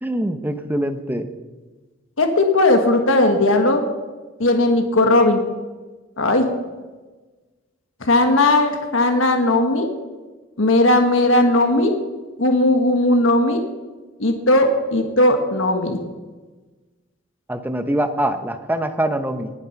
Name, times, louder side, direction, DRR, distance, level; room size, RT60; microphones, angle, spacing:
voice 1, 0.0-1.3 17.5-19.5, right 1 dB, 10° right, 9 dB, 0.8 m, -23 dB
voice 2, 2.2-3.8 4.4-5.4 6.2-6.5 8.0-9.9 10.6-11.9 12.4-13.6 14.2-16.0, left 2 dB, 70° left, 5 dB, 1.4 m, -17 dB
19.5 x 7.2 x 5.8 m, 1.3 s
head